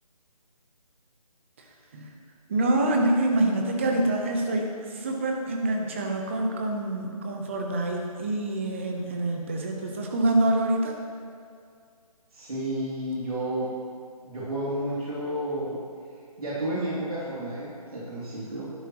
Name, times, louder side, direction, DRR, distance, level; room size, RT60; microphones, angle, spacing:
voice 1, 2.5-10.9, right 1 dB, 20° right, 1 dB, 0.7 m, -26 dB
voice 2, 12.3-13.7 14.2-15.8 16.4-18.6, right 1 dB, 70° right, -8 dB, 2.6 m, -31 dB
11.0 x 10.0 x 3.0 m, 2.3 s
figure-of-eight pair, 165°, 20 cm